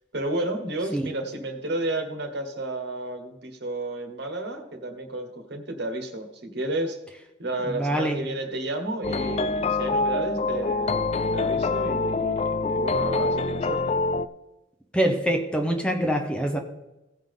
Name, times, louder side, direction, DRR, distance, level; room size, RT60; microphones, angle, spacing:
voice 1, 0.1-7.0 7.4-14.0, right 1 dB, 60° right, 4 dB, 1.5 m, -32 dB
voice 2, 7.8-8.2 14.9-16.6, right 1 dB, 5° left, 4 dB, 0.9 m, -24 dB
sound 1, 9.0-14.3, left 3 dB, 35° left, 0.3 m, -25 dB
16.5 x 5.6 x 3.7 m, 0.99 s
head